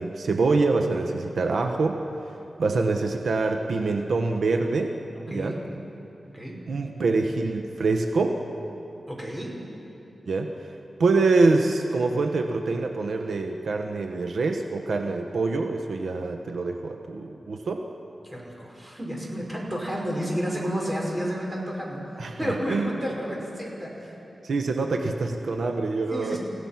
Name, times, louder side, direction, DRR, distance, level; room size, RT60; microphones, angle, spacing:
voice 1, 0.0-5.0 5.3-5.6 6.7-8.4 10.3-10.7 11.0-17.8 22.2-22.9 24.4-26.4, right 3 dB, 80° right, 4 dB, 1.1 m, -25 dB
voice 2, 5.3-5.6 6.3-6.6 9.1-9.6 18.2-22.0 22.4-24.2 25.2-25.3 26.1-26.4, equal, 15° right, -2 dB, 5.6 m, -31 dB
29.5 x 17.0 x 6.0 m, 2.9 s
wide cardioid pair, 80°, 0 cm